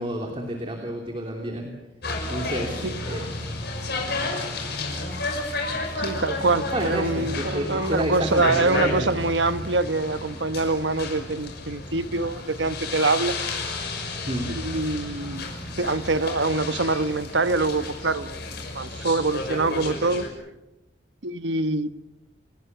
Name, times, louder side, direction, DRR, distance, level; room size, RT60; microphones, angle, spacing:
voice 1, 0.0-1.7 2.3-3.2 6.7-9.1 14.3-14.5, right 1 dB, 30° right, 2 dB, 3.1 m, -29 dB
sound 1, 2.0-20.3, left 2 dB, 65° left, 6.0 m, -32 dB
voice 2, 6.0-13.3 14.5-15.5 15.8-18.4 18.7-20.3 21.2-21.9, right 3 dB, 85° right, 11 dB, 1.2 m, -25 dB
30.0 x 18.5 x 6.9 m, 0.99 s
head